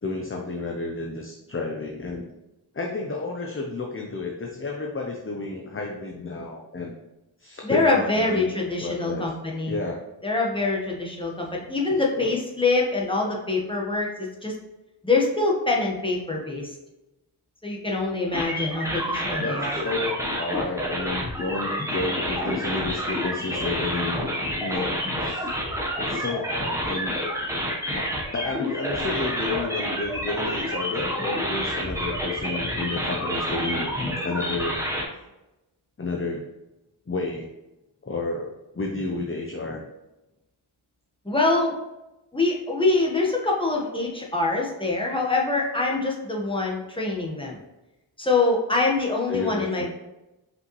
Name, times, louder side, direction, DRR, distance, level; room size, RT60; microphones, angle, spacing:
voice 1, 0.0-2.3 2.7-6.9 7.4-8.5 8.8-9.3 9.7-10.0 11.9-12.3 19.4-24.3 24.6-25.5 26.0-27.2 27.9-28.1 28.3-33.9 34.2-34.9 36.0-36.4 37.1-37.5 38.0-39.8 49.3-49.9, left 3 dB, 30° left, 0 dB, 0.7 m, -31 dB
voice 2, 7.6-9.8 10.2-14.5 15.0-16.8 17.6-19.8 41.2-41.7 42.3-47.6 48.2-49.9, left 3 dB, 10° left, -2 dB, 1.3 m, -24 dB
sound 1, 18.3-35.0, equal, 5° right, 1.2 m, -29 dB
5.5 x 5.3 x 3.2 m, 0.97 s
wide cardioid pair, 70°, 45 cm